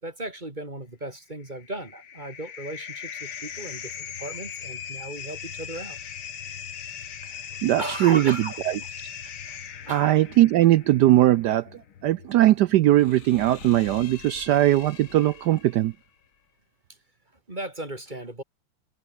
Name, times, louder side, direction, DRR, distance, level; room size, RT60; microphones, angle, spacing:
voice 1, 0.0-6.0 7.8-8.9 9.9-10.1 17.5-18.4, right 1 dB, 20° right, 3.4 m, -36 dB
sound 1, 1.4-15.9, left 8 dB, 70° left, 2.6 m, -40 dB
voice 2, 7.6-8.4 8.7-8.8 9.9-11.7 12.0-15.9, right 14 dB, 80° right, 0.9 m, -20 dB
omnidirectional pair, 2.3 m